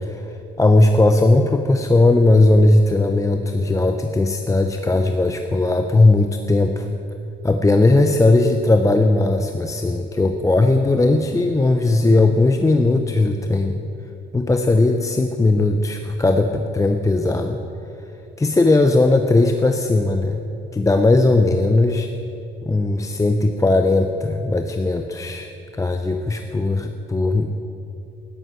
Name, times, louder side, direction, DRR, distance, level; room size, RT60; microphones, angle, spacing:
voice 1, 0.0-6.9 7.4-13.8 14.3-17.6 18.4-20.4 20.7-22.1 22.6-25.5 25.8-27.6, left 2 dB, 15° left, 6 dB, 0.6 m, -18 dB
12.5 x 11.0 x 6.1 m, 2.9 s
cardioid pair, 90°, 20 cm